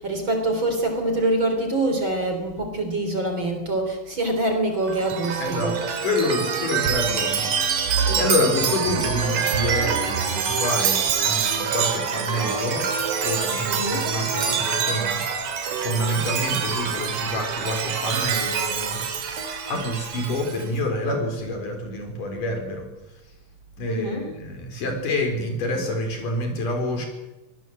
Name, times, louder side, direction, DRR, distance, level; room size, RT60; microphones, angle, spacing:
voice 1, 0.0-5.8 13.7-14.1 23.9-24.3, right 2 dB, 35° right, 4 dB, 4.1 m, -25 dB
Chime, 4.8-20.7, right 6 dB, 60° right, 3.6 m, -25 dB
voice 2, 5.4-5.7 6.0-12.9 13.2-19.0 19.7-22.9 23.8-27.1, left 1 dB, 65° left, 3 dB, 5.8 m, -27 dB
24.5 x 18.0 x 7.8 m, 1.0 s
omnidirectional pair, 4.1 m